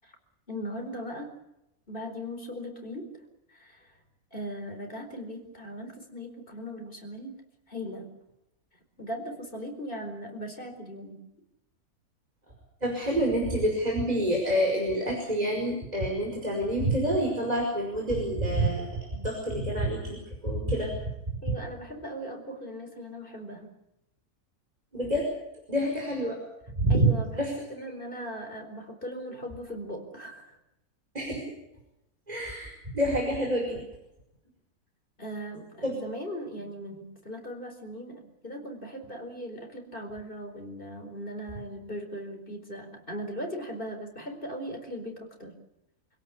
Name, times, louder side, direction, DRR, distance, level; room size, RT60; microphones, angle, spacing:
voice 1, 0.5-1.3 1.9-3.1 3.5-3.9 4.3-7.3 7.7-8.1 9.0-11.2 21.4-23.7 26.9-30.6 35.2-45.5, equal, 35° left, 4 dB, 4.8 m, -39 dB
voice 2, 12.8-21.1 24.9-25.3 25.7-26.4 26.8-27.1 27.4-27.5 31.1-31.5 32.3-33.8 35.8-36.0, right 1 dB, 25° right, 0 dB, 5.3 m, -27 dB
26.5 x 17.0 x 8.5 m, 0.88 s
omnidirectional pair, 1.5 m